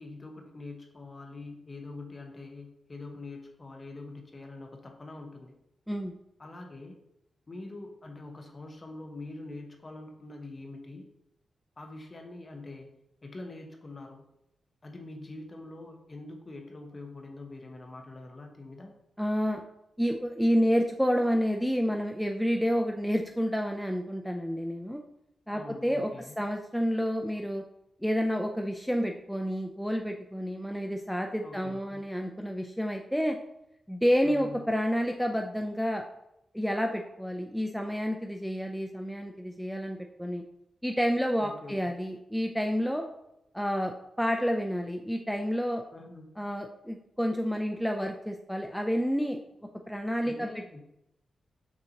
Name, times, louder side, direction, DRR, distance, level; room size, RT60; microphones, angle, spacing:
voice 1, 0.0-5.5 6.4-7.0 7.5-11.1 11.8-12.9 13.2-14.2 14.8-18.9 25.5-26.4 31.4-32.0 34.2-34.6 41.4-41.9 45.9-46.3 50.2-50.8, left 2 dB, 35° left, 3 dB, 0.8 m, -44 dB
voice 2, 19.2-19.6 20.0-25.0 25.5-26.1 26.4-27.6 28.0-33.4 33.9-36.0 36.5-40.4 40.8-43.0 43.5-45.8 46.4-49.4 49.9-50.5, equal, ahead, 3 dB, 0.3 m, -29 dB
6.2 x 2.8 x 2.8 m, 0.84 s
cardioid pair, 85°, 0 cm